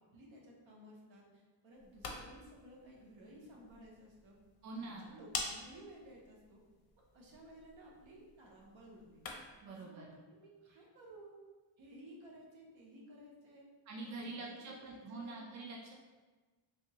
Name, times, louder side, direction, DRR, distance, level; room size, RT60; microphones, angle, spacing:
voice 1, 0.0-4.4 4.7-6.6 7.1-9.2 9.7-10.0 10.3-11.4 11.8-13.7 14.0-15.4, right 1 dB, 65° right, -2 dB, 1.0 m, -56 dB
sound 1, 1.7-9.7, left 4 dB, 50° left, 0.6 m, -48 dB
voice 2, 4.6-5.1 9.6-10.1 13.9-15.9, right 3 dB, 35° right, -2 dB, 0.6 m, -45 dB
3.4 x 2.8 x 2.9 m, 1.3 s
cardioid pair, 100°, 50 cm